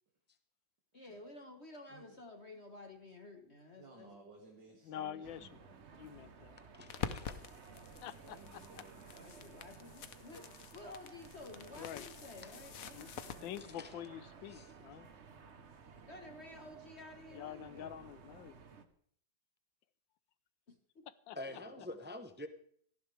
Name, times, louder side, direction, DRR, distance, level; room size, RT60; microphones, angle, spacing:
voice 1, 0.9-4.1 8.7-8.8 9.1-13.5 16.1-18.0 20.7-21.1, left 2 dB, 40° left, 4 dB, 1.5 m, -53 dB
voice 2, 3.7-5.9 8.2-9.6 21.5-22.0, right 3 dB, 70° right, -1 dB, 2.9 m, -59 dB
voice 3, 4.8-5.5 6.0-6.6 8.0-8.8 11.7-12.1 12.9-13.1 13.4-15.1 17.3-18.6 21.3-21.4, left 10 dB, 85° left, 15 dB, 1.5 m, -46 dB
sound 1, 5.2-18.9, right 5 dB, 45° right, 1.2 m, -56 dB
voice 4, 6.6-7.4 12.4-12.5 13.6-13.9 14.5-14.7 21.3-22.5, left 1 dB, 15° right, 8 dB, 0.3 m, -47 dB
sound 2, 6.9-13.6, left 8 dB, 55° left, 1.2 m, -47 dB
18.0 x 14.5 x 3.4 m, 0.62 s
omnidirectional pair, 2.0 m